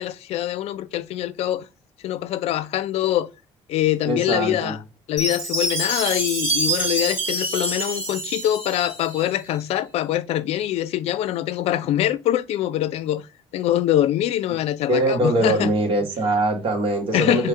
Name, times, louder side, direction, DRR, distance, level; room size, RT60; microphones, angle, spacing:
voice 1, 0.0-1.7 2.0-3.3 3.7-4.8 5.1-13.3 13.5-15.7 17.1-17.5, left 12 dB, 80° left, 0.4 m, -24 dB
voice 2, 4.0-4.8 14.9-17.5, right 1 dB, 60° right, 1.7 m, -22 dB
Chime, 5.2-9.3, right 1 dB, 20° right, 2.1 m, -26 dB
4.5 x 2.4 x 4.8 m
cardioid pair, 100°, 11 cm